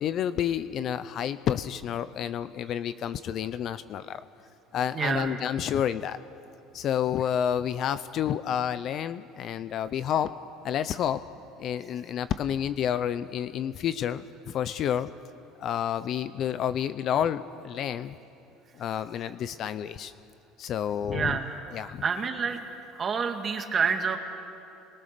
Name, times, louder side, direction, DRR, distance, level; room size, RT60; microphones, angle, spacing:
voice 1, 0.0-4.2 4.7-6.2 6.7-10.3 10.6-11.2 11.6-15.1 15.6-18.2 18.7-20.1 20.6-21.4 21.7-22.0, left 9 dB, 50° left, 13 dB, 0.7 m, -29 dB
voice 2, 4.9-5.3 21.1-21.5 22.0-22.6 22.9-24.2, right 6 dB, 30° right, 5 dB, 2.0 m, -28 dB
29.5 x 22.5 x 6.8 m, 2.7 s
supercardioid pair, 115°, 0 cm